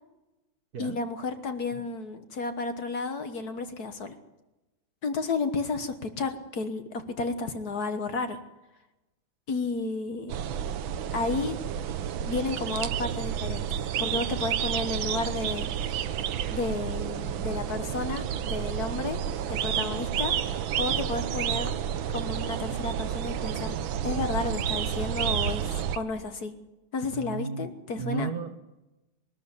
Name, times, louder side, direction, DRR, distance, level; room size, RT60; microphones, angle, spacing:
voice 1, 0.8-4.1 5.0-8.4 9.5-10.3 11.1-11.6 12.2-13.7 14.0-15.7 16.5-19.2 19.5-21.7 22.1-23.8 24.0-25.7 26.0-26.5 26.9-28.3, left 3 dB, 50° left, 8 dB, 1.7 m, -32 dB
sound 1, 10.3-26.0, right 9 dB, 75° right, 1.6 m, -30 dB
voice 2, 27.1-28.6, right 5 dB, 50° right, 8 dB, 1.7 m, -35 dB
21.0 x 13.0 x 9.7 m, 1.0 s
omnidirectional pair, 2.2 m